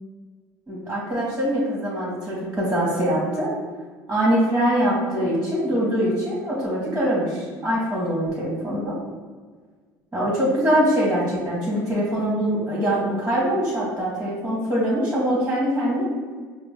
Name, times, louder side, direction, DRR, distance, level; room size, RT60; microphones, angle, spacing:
voice 1, 0.7-3.6 4.1-9.0 10.1-16.0, equal, 10° right, -5 dB, 1.3 m, -23 dB
4.8 x 2.1 x 3.6 m, 1.5 s
hypercardioid pair, 70°, 10 cm